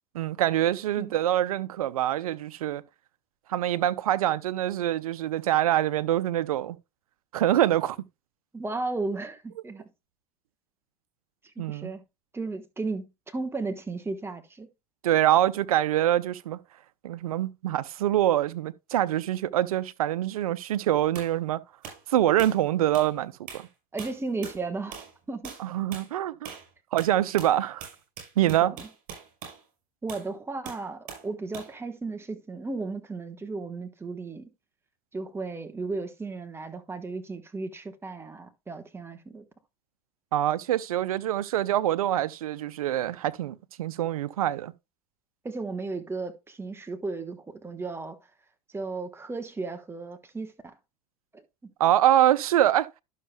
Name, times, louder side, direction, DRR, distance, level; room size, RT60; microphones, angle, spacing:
voice 1, 0.1-2.8 3.5-6.8 7.3-8.0 11.6-11.9 15.0-16.6 17.0-21.6 22.1-23.7 25.6-26.5 26.9-27.9 28.4-28.7 40.3-44.7 51.8-52.9, right 12 dB, 85° right, 0.6 m, -25 dB
voice 2, 8.5-9.9 11.6-12.0 12.3-14.7 23.9-25.6 28.5-28.9 30.0-34.5 35.1-39.5 45.4-48.2 48.7-50.7 51.3-51.7, right 3 dB, 15° right, 1.2 m, -35 dB
sound 1, 21.2-21.3 21.8-22.0 22.4-22.6 22.9-23.1 23.5-23.7 24.0-24.6 24.9-25.2 25.4-25.7 25.9-26.1 26.5-26.7 27.0-29.6 30.1-30.3 30.7-31.3 31.5-31.8, right 7 dB, 55° right, 5.8 m, -42 dB
12.0 x 6.5 x 2.3 m
hypercardioid pair, 100°, 18 cm